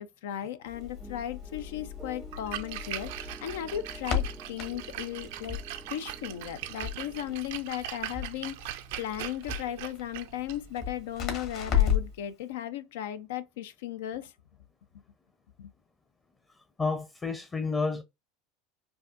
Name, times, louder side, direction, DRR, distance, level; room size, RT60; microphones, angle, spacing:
voice 1, 0.0-5.6 5.9-14.3 15.6-15.7, left 11 dB, 85° left, 0.4 m, -36 dB
Crackle, 0.7-12.2, left 9 dB, 55° left, 1.4 m, -34 dB
sound 1, 0.7-7.4, right 3 dB, 15° right, 0.4 m, -50 dB
Splash splatter, 2.2-12.1, right 12 dB, 75° right, 0.5 m, -41 dB
voice 2, 16.5-18.0, left 4 dB, 20° left, 0.6 m, -31 dB
4.6 x 2.6 x 2.5 m
supercardioid pair, 105°, 0 cm